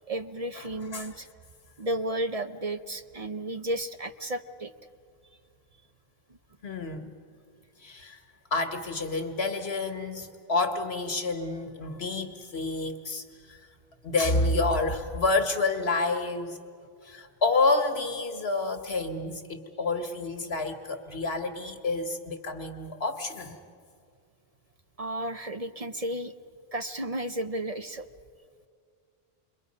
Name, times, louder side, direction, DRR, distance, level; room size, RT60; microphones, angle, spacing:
voice 1, 0.1-1.3 1.8-4.7 25.0-26.3 26.7-28.1, right 1 dB, 40° right, 8 dB, 0.7 m, -33 dB
voice 2, 6.6-7.1 7.8-8.2 8.5-13.6 14.0-16.6 17.0-23.6, left 3 dB, 85° left, 6 dB, 1.8 m, -29 dB
28.5 x 22.5 x 5.4 m, 2.2 s
omnidirectional pair, 1.0 m